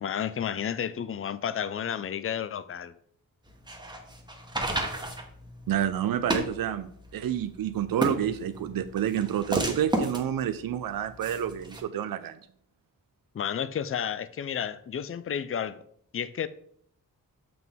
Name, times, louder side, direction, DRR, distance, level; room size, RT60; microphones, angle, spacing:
voice 1, 0.0-2.9 13.3-15.8 16.1-16.5, left 8 dB, 40° left, 0.4 m, -31 dB
sound 1, 3.5-11.8, right 1 dB, 10° right, 1.1 m, -33 dB
voice 2, 4.8-5.1 5.7-12.4, right 10 dB, 75° right, 0.5 m, -29 dB
7.5 x 6.0 x 3.5 m
wide cardioid pair, 130°, 35 cm